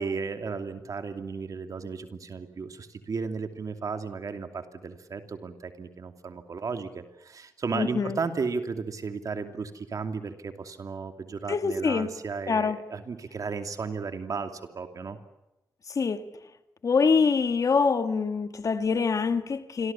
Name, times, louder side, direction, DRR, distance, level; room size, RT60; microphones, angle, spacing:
voice 1, 0.0-15.2, right 5 dB, 60° right, 2.7 m, -34 dB
voice 2, 7.7-8.2 11.5-12.1 12.5-12.8 15.9-16.3 16.8-19.9, left 5 dB, 55° left, 1.8 m, -25 dB
27.5 x 23.5 x 7.2 m
cardioid pair, 80°, 7 cm